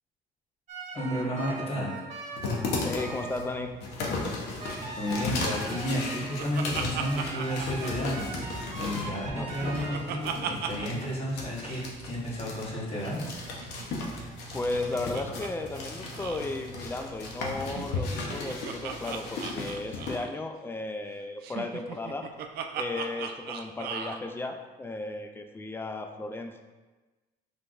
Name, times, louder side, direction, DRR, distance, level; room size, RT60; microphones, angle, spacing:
sound 1, 0.7-3.6 4.6-6.6 7.0-10.0, right 3 dB, 45° right, 1.0 m, -41 dB
voice 1, 0.9-1.9 4.2-4.3 4.8-13.2, equal, 35° left, -5 dB, 1.4 m, -32 dB
sound 2, 2.3-20.2, left 3 dB, 80° left, 0.9 m, -36 dB
voice 2, 2.8-3.7 9.2-9.5 14.5-22.3 22.8-26.6, left 2 dB, 15° left, 5 dB, 0.4 m, -35 dB
Laughter, 5.7-8.6 9.0-11.1 11.3-11.4 11.6-11.9 13.1-15.5 15.7-15.9 16.1-16.5 17.6-20.4 21.4-24.2, right 7 dB, 70° right, 0.5 m, -38 dB
5.8 x 3.4 x 2.5 m, 1.2 s
cardioid pair, 110°, 17 cm